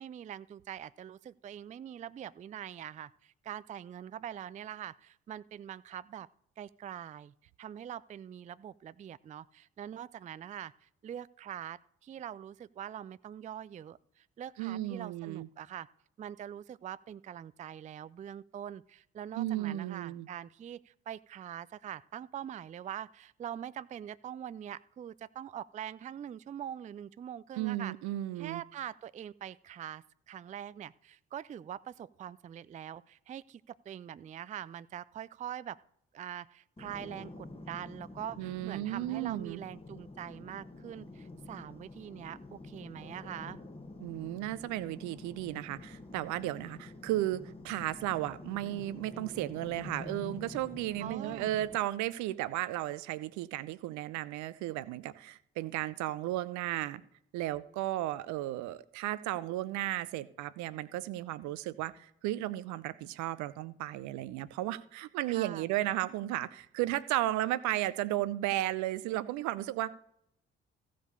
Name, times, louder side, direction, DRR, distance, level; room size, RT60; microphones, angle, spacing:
voice 1, 0.0-6.3 6.6-15.9 16.2-27.9 28.4-35.8 36.1-43.6 51.0-51.5 65.3-65.7, right 10 dB, 25° right, 17 dB, 0.4 m, -43 dB
voice 2, 14.6-15.5 19.3-20.3 27.6-28.6 38.4-39.6 44.0-57.0 57.3-70.0, right 15 dB, 65° right, 16 dB, 0.6 m, -34 dB
sound 1, 36.8-51.8, left 2 dB, 20° left, 1.4 m, -48 dB
15.0 x 5.1 x 6.5 m, 0.72 s
figure-of-eight pair, 40°, 31 cm